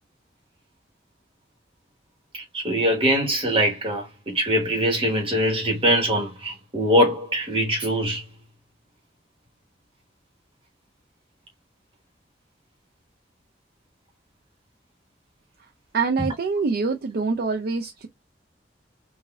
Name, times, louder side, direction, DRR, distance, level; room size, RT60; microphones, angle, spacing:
voice 1, 2.5-8.2, equal, 30° right, 1.3 m, -22 dB
voice 2, 15.9-18.1, right 4 dB, 55° right, 0.4 m, -25 dB
3.9 x 2.5 x 2.3 m
head